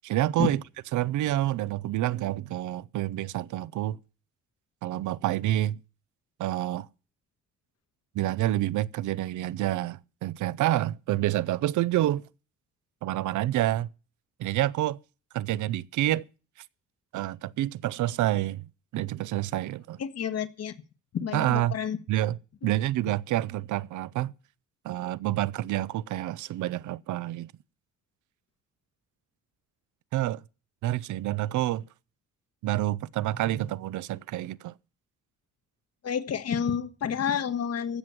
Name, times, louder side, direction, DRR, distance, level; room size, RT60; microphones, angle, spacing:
voice 1, 0.0-0.6 0.9-4.0 4.8-5.8 6.4-6.9 8.1-12.2 13.0-13.9 14.4-15.0 15.3-16.2 17.1-20.0 21.3-21.8 22.1-22.4 22.6-24.3 24.8-27.5 30.1-30.4 30.8-31.8 32.6-34.7, right 14 dB, 80° right, 0.6 m, -28 dB
voice 2, 20.0-20.7 21.1-22.0 22.6-22.7 36.0-38.0, left 7 dB, 55° left, 1.5 m, -29 dB
15.0 x 6.1 x 9.5 m
cardioid pair, 90°, 30 cm